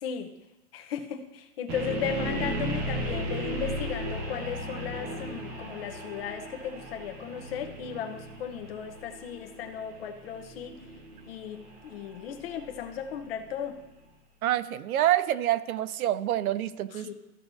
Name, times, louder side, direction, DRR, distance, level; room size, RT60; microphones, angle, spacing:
voice 1, 0.7-10.8 11.3-13.8 16.9-17.1, left 7 dB, 40° left, 5 dB, 0.9 m, -36 dB
sound 1, 1.7-13.6, right 1 dB, 20° right, 0.9 m, -36 dB
voice 2, 14.4-17.1, right 13 dB, 70° right, 15 dB, 0.6 m, -27 dB
15.0 x 5.9 x 2.7 m, 0.99 s
supercardioid pair, 170°, 46 cm